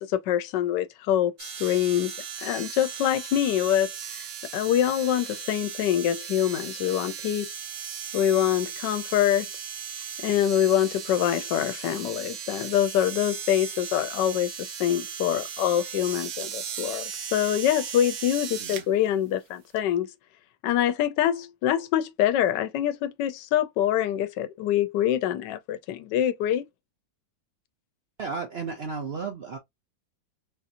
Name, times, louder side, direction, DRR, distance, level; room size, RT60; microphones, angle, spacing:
voice 1, 0.0-7.5 8.1-9.5 10.2-20.1 20.6-26.7, left 11 dB, 90° left, 1.2 m, -25 dB
sound 1, 1.4-18.8 19.8-19.9, right 8 dB, 80° right, 1.3 m, -37 dB
voice 2, 28.2-29.6, right 5 dB, 60° right, 0.6 m, -33 dB
3.8 x 2.8 x 2.5 m
omnidirectional pair, 1.8 m